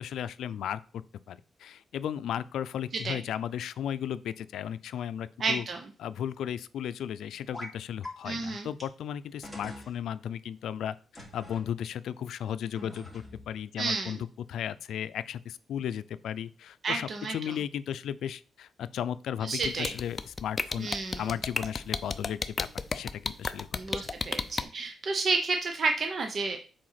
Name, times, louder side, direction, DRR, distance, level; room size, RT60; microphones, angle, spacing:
voice 1, 0.0-5.6 6.0-14.2 14.5-20.9 21.2-23.7 24.0-24.1, left 9 dB, 85° left, 15 dB, 0.4 m, -35 dB
voice 2, 5.4-5.8 8.2-8.7 13.8-14.2 16.8-17.4 19.4-19.9 20.8-21.3 23.7-26.6, right 3 dB, 45° right, 5 dB, 0.9 m, -31 dB
sound 1, 7.5-7.8 8.0-8.1 8.8-8.9 9.4-9.9 11.1-11.6 12.8-13.5, left 1 dB, 5° right, 2.8 m, -43 dB
sound 2, 19.6-24.6, left 4 dB, 25° left, 0.5 m, -31 dB
7.6 x 4.3 x 5.7 m, 0.39 s
cardioid pair, 135°, 0 cm